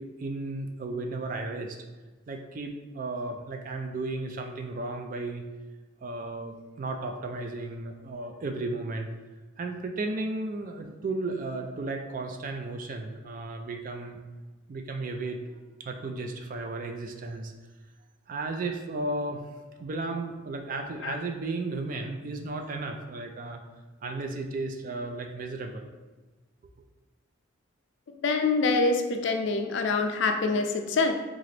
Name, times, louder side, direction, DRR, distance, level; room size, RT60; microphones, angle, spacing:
voice 1, 0.0-1.8 2.3-5.4 6.0-9.1 9.6-14.2 14.7-15.4 15.8-17.5 18.3-19.5 19.8-23.6 24.0-25.9, right 2 dB, 40° right, 4 dB, 0.3 m, -34 dB
voice 2, 28.2-31.1, left 3 dB, 60° left, 5 dB, 0.3 m, -25 dB
3.8 x 2.4 x 3.2 m, 1.2 s
head